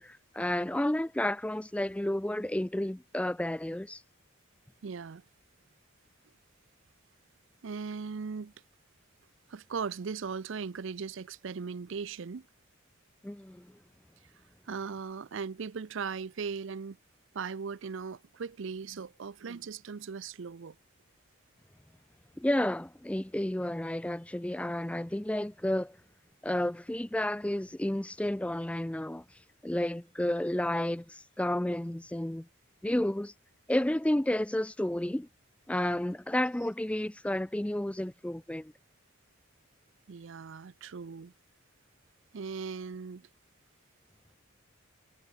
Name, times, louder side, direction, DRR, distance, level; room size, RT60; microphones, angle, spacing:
voice 1, 0.0-4.0 13.2-13.7 22.4-26.0 26.4-29.2 29.6-32.5 32.8-33.3 33.7-35.3 35.7-38.7, left 1 dB, 5° left, 0.3 m, -31 dB
voice 2, 4.8-5.2 7.6-8.5 9.5-12.5 14.7-17.0 17.3-20.8 40.1-41.3 42.3-43.3, right 5 dB, 65° right, 0.5 m, -38 dB
head